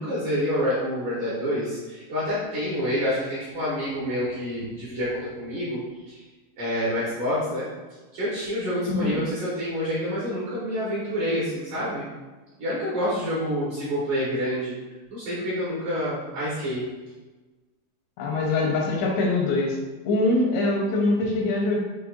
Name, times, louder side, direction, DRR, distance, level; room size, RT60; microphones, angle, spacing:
voice 1, 0.0-5.8 6.1-6.2 6.6-7.7 8.1-12.1 12.6-14.7 15.1-16.8, equal, 70° right, -10 dB, 2.0 m, -27 dB
voice 2, 8.9-9.2 18.2-19.8 20.0-21.8, left 2 dB, 90° left, -1 dB, 3.0 m, -23 dB
7.3 x 2.9 x 2.5 m, 1.2 s
omnidirectional pair, 5.3 m